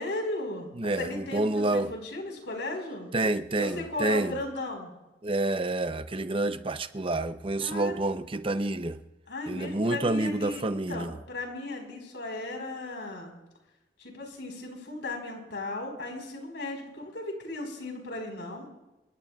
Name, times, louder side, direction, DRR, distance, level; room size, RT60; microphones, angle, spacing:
voice 1, 0.0-4.9 7.6-8.0 9.3-13.3 14.0-18.7, left 2 dB, 80° left, 4.7 m, -36 dB
voice 2, 0.8-1.9 3.1-4.3 5.2-9.0 9.5-11.1, right 2 dB, 30° right, 0.7 m, -28 dB
27.5 x 21.5 x 2.4 m
head